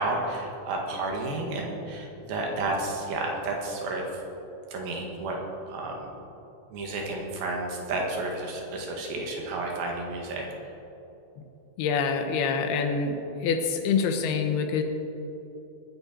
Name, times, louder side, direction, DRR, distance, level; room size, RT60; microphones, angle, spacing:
voice 1, 0.0-4.1 4.7-5.4 5.7-6.1 6.7-10.4, right 2 dB, 70° right, 0 dB, 3.5 m, -31 dB
voice 2, 11.8-13.2 13.4-14.8, left 5 dB, 80° left, 5 dB, 3.1 m, -26 dB
21.5 x 9.7 x 4.4 m, 3.0 s
omnidirectional pair, 4.5 m